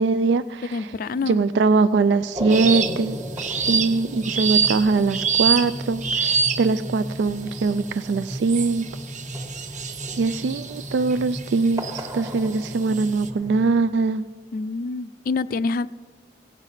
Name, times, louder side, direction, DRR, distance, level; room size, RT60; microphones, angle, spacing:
voice 1, 0.0-0.9 1.3-8.9 10.2-14.2, right 4 dB, 80° right, 13 dB, 0.3 m, -22 dB
voice 2, 0.7-1.4 14.5-15.9, left 4 dB, 55° left, 17 dB, 0.3 m, -26 dB
sound 1, 2.3-13.7, equal, 20° right, 1.0 m, -35 dB
sound 2, 2.5-3.0 3.4-6.9 7.5-7.9 8.5-12.0 12.5-13.3, right 6 dB, 45° right, 0.8 m, -26 dB
17.0 x 8.1 x 5.7 m, 1.4 s
head